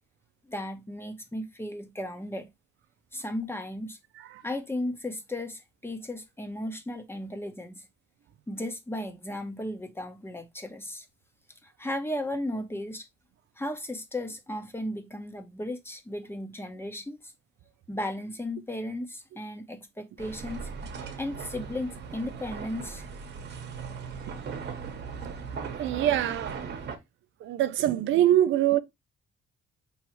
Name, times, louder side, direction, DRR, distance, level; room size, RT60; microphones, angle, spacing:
voice 1, 0.4-2.5 3.1-4.0 4.4-7.8 8.5-11.1 11.6-13.1 13.6-17.3 17.9-20.7 21.2-23.0, left 1 dB, 10° left, 0.9 m, -35 dB
sound 1, 20.2-27.0, right 6 dB, 60° right, 1.0 m, -38 dB
voice 2, 25.8-26.7 27.4-28.8, right 12 dB, 75° right, 0.4 m, -24 dB
4.6 x 3.1 x 3.0 m
cardioid pair, 90°, 20 cm